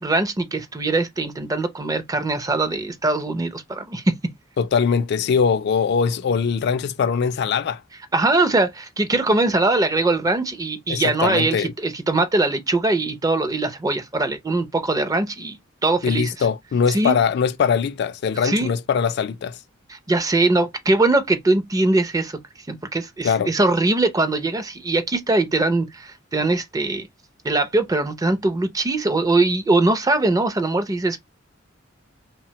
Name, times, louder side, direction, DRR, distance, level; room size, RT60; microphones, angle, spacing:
voice 1, 0.0-4.0 8.1-16.5 16.9-17.2 18.4-18.7 19.9-22.4 22.7-27.1 27.4-31.2, right 2 dB, 20° right, 0.4 m, -21 dB
voice 2, 4.6-7.8 10.9-11.7 16.0-19.6 23.2-23.5, left 6 dB, 55° left, 0.3 m, -21 dB
3.2 x 2.1 x 2.8 m
head